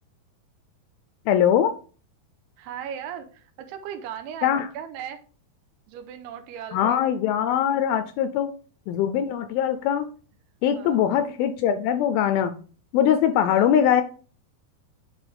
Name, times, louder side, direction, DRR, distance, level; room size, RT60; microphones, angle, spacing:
voice 1, 1.3-1.7 4.4-4.7 6.7-8.5 8.9-10.1 10.6-12.5 12.9-14.0, left 9 dB, 80° left, 10 dB, 2.2 m, -22 dB
voice 2, 2.6-5.2 5.9-7.1 10.8-11.2 13.5-13.7, right 9 dB, 85° right, 7 dB, 2.8 m, -37 dB
10.5 x 4.2 x 3.4 m, 0.39 s
omnidirectional pair, 4.7 m